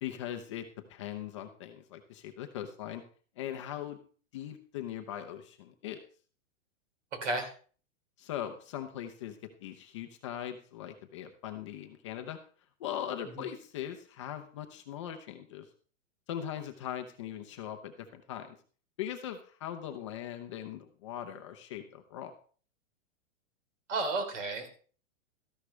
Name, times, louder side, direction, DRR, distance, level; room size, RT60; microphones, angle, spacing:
voice 1, 0.0-0.6 0.9-3.0 3.4-4.0 4.3-6.0 8.2-12.4 12.8-15.7 16.3-18.6 19.0-22.3, left 10 dB, 25° left, 5 dB, 0.6 m, -40 dB
voice 2, 23.9-24.7, right 2 dB, 65° right, 7 dB, 3.7 m, -32 dB
13.5 x 11.0 x 3.3 m, 0.42 s
supercardioid pair, 175°, 38 cm